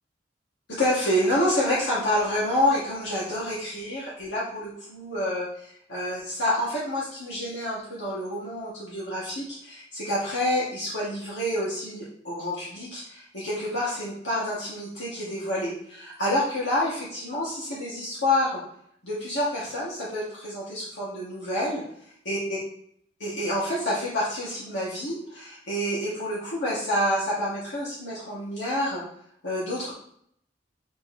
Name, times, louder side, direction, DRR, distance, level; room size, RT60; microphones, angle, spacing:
voice 1, 0.7-18.6 19.0-21.8 22.3-22.4 23.2-29.0 29.4-29.9, left 1 dB, 85° left, -8 dB, 2.8 m, -28 dB
8.4 x 5.1 x 3.4 m, 0.68 s
head